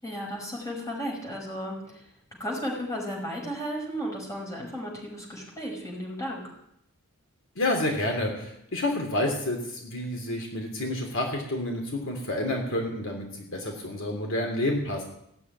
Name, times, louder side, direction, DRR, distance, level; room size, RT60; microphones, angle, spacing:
voice 1, 0.0-2.1 2.4-6.5, equal, 15° left, -2 dB, 5.7 m, -34 dB
voice 2, 7.6-13.3 13.5-15.0, left 1 dB, 60° left, 1 dB, 3.2 m, -29 dB
17.0 x 8.4 x 9.7 m, 0.76 s
head